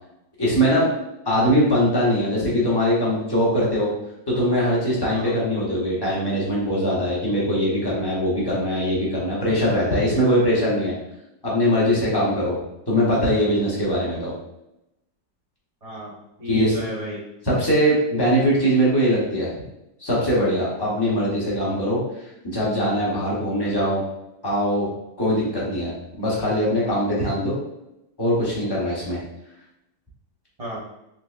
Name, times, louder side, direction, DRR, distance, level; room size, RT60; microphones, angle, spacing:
voice 1, 0.4-0.9 1.3-3.9 4.3-10.9 11.4-12.6 12.9-14.3 16.5-16.7 17.5-19.5 20.0-22.0 22.4-24.0 24.4-24.9 25.2-27.5 28.2-29.2, equal, 40° left, -7 dB, 0.3 m, -21 dB
voice 2, 15.8-17.2 30.6-30.8, left 1 dB, 30° right, -6 dB, 0.6 m, -33 dB
3.8 x 3.0 x 2.4 m, 0.87 s
omnidirectional pair, 2.0 m